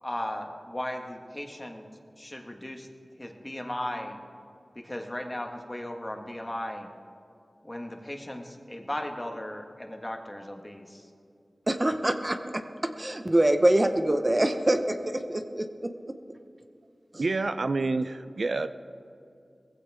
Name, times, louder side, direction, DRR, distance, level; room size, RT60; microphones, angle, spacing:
voice 1, 0.0-1.8 2.2-2.9 3.2-4.2 4.7-6.9 7.6-11.1, left 1 dB, 25° left, 3 dB, 1.6 m, -36 dB
voice 2, 11.7-12.6 13.0-15.0 15.3-15.9, right 1 dB, 30° right, 7 dB, 0.9 m, -24 dB
voice 3, 17.2-18.7, right 3 dB, 75° right, 10 dB, 0.4 m, -28 dB
19.0 x 15.5 x 3.6 m, 2.4 s
wide cardioid pair, 45°, 0 cm